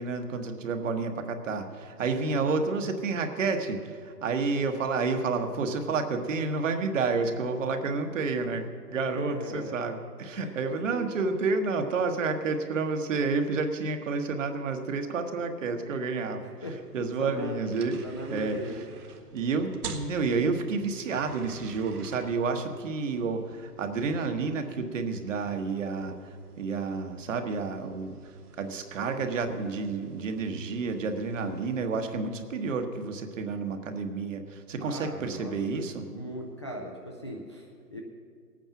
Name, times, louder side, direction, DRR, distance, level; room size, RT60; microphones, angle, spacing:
voice 1, 0.0-16.4 16.9-18.0 18.3-18.6 19.3-28.2 28.6-36.1, right 4 dB, 50° right, 6 dB, 1.4 m, -30 dB
voice 2, 2.1-2.5 9.1-9.8 10.3-10.6 10.9-11.1 16.4-16.8 17.2-17.6 18.0-18.8 34.8-38.0, equal, 20° left, -1 dB, 0.4 m, -39 dB
sound 1, 16.7-31.8, right 4 dB, 70° right, 1.7 m, -49 dB
18.5 x 9.0 x 5.9 m, 2.1 s
hypercardioid pair, 150°, 47 cm